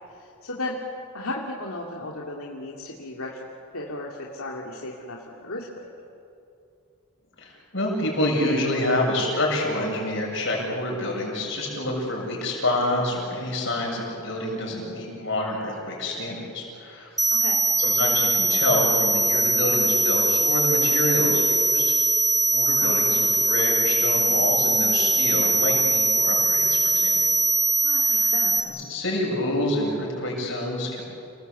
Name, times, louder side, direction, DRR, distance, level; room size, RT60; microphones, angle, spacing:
voice 1, 0.1-0.8 1.1-3.5 3.7-5.9 17.3-17.6 22.7-23.1 27.8-28.7, left 2 dB, 85° left, -2 dB, 2.5 m, -35 dB
voice 2, 7.4-17.1 17.8-21.9 22.5-27.3 28.9-31.0, left 1 dB, 60° left, -2 dB, 7.4 m, -27 dB
sound 1, 17.2-28.6, right 1 dB, ahead, 1.0 m, -21 dB
29.5 x 19.5 x 8.3 m, 2.6 s
head